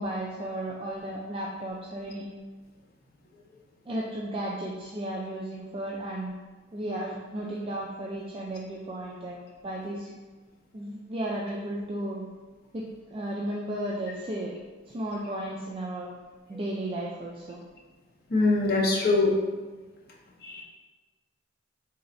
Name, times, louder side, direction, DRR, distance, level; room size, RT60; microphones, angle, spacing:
voice 1, 0.0-2.2 3.9-6.3 6.7-10.2 10.7-12.3 12.7-14.5 14.9-16.1 16.5-17.6, right 1 dB, 30° right, -3 dB, 0.3 m, -34 dB
voice 2, 18.3-19.3 20.4-20.6, left 3 dB, 55° left, -2 dB, 0.7 m, -23 dB
4.1 x 3.1 x 2.6 m, 1.3 s
head